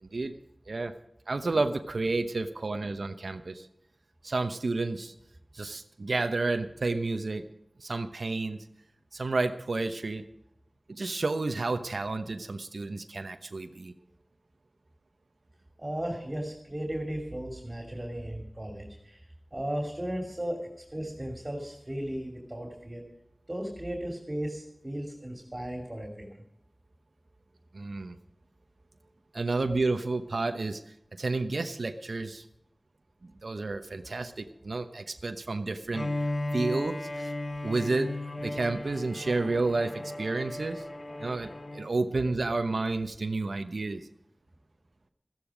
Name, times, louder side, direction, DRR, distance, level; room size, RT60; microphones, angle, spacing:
voice 1, 0.0-0.3 0.7-0.9 1.3-3.7 4.2-5.1 5.5-7.4 7.8-8.6 9.1-10.2 10.9-13.9 27.7-28.1 29.3-30.8 31.2-32.5 33.2-36.1 36.5-37.3 37.6-38.1 38.4-40.8 41.2-44.0, right 3 dB, 80° right, 8 dB, 0.9 m, -31 dB
voice 2, 15.8-19.2 19.5-20.6 20.9-23.0 23.5-26.4, right 1 dB, 25° right, 2 dB, 3.0 m, -35 dB
Bowed string instrument, 35.9-42.0, left 1 dB, 50° left, 1.2 m, -35 dB
14.5 x 13.5 x 5.0 m, 0.80 s
wide cardioid pair, 50°, 0 cm